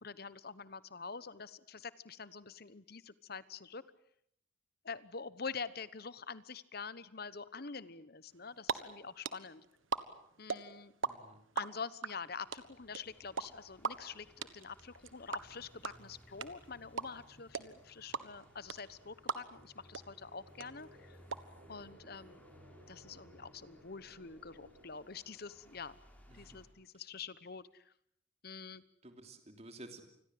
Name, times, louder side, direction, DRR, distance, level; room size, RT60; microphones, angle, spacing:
voice 1, 0.0-3.8 4.8-9.6 10.4-10.9 11.5-21.2 21.7-22.4 22.9-26.0 26.3-27.9 28.4-28.8, left 5 dB, 50° left, 17 dB, 1.1 m, -46 dB
sound 1, 8.3-8.7 9.0-11.1 11.4-19.7 19.9-20.0 20.3-21.4, right 5 dB, 90° right, 1.5 m, -37 dB
voice 2, 11.0-11.4 26.3-26.6 29.0-30.0, right 2 dB, 35° right, 6 dB, 3.1 m, -52 dB
sound 2, 12.4-26.7, equal, 10° left, 5.1 m, -62 dB
sound 3, 17.5-25.9, equal, 65° right, 6.7 m, -62 dB
28.0 x 21.0 x 7.8 m, 0.69 s
head